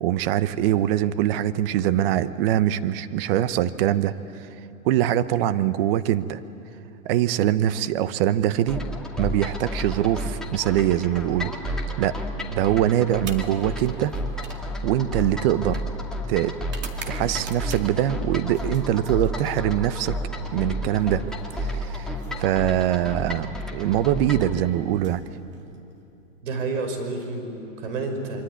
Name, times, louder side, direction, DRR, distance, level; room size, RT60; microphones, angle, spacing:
voice 1, 0.0-4.5 4.8-6.4 7.0-8.9 9.2-11.5 12.0-12.2 12.5-14.1 14.8-15.8 16.3-16.6 17.0-20.2 20.5-21.3 21.6-25.2, right 12 dB, 45° right, 13 dB, 1.0 m, -23 dB
sound 1, 8.7-24.5, equal, ahead, 2.3 m, -31 dB
sound 2, 13.1-18.1 18.5-19.7 20.9-22.7 23.8-24.1 24.9-26.0, right 6 dB, 25° right, 2.2 m, -45 dB
voice 2, 26.4-28.4, right 3 dB, 70° right, 5 dB, 5.5 m, -29 dB
26.0 x 23.5 x 9.6 m, 2.8 s
hypercardioid pair, 135°, 41 cm